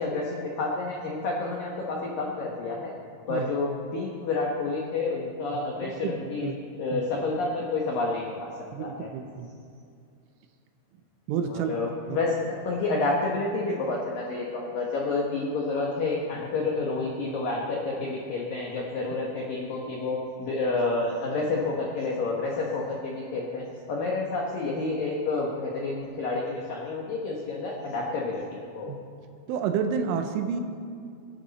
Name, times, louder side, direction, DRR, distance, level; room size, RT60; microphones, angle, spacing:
voice 1, 0.0-2.9 3.3-6.5 6.8-8.5 8.8-9.1 11.5-28.9, left 3 dB, 75° left, -2 dB, 2.0 m, -29 dB
voice 2, 5.8-6.6 6.9-7.0 8.7-9.5 11.3-11.7 12.1-12.2 28.9-29.0 29.5-30.6, right 7 dB, 80° right, 6 dB, 3.1 m, -30 dB
22.5 x 12.0 x 4.2 m, 2.4 s
omnidirectional pair, 6.0 m